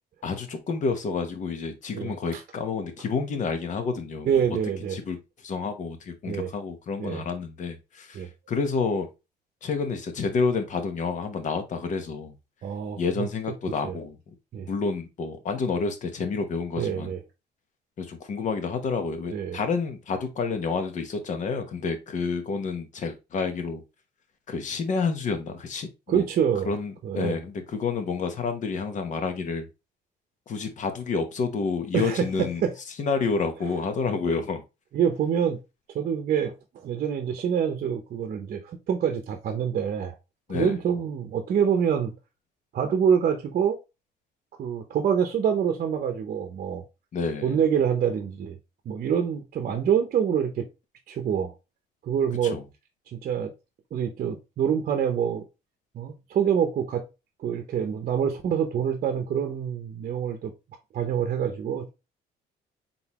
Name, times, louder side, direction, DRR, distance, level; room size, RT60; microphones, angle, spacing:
voice 1, 0.2-4.5 4.9-9.1 9.6-12.3 13.0-14.3 14.7-17.1 18.0-23.8 24.5-26.2 26.6-29.7 30.5-32.6 33.0-34.6 40.5-40.8 47.1-47.6 52.4-52.6, left 4 dB, 45° left, 1.0 m, -29 dB
voice 2, 1.9-2.4 4.3-5.0 6.3-6.5 7.0-7.2 8.1-8.3 12.6-13.3 13.8-13.9 14.5-14.7 16.8-17.2 19.3-19.6 26.1-26.7 27.0-27.4 31.9-32.7 34.9-35.6 35.9-40.1 40.5-42.1 42.7-43.8 44.6-46.8 47.4-48.6 48.9-50.7 51.1-51.5 52.0-52.6 53.2-53.5 53.9-55.4 55.9-57.0 57.4-60.5 60.9-61.9, right 8 dB, 50° right, 0.8 m, -26 dB
3.9 x 3.9 x 2.9 m
cardioid pair, 110°, 17 cm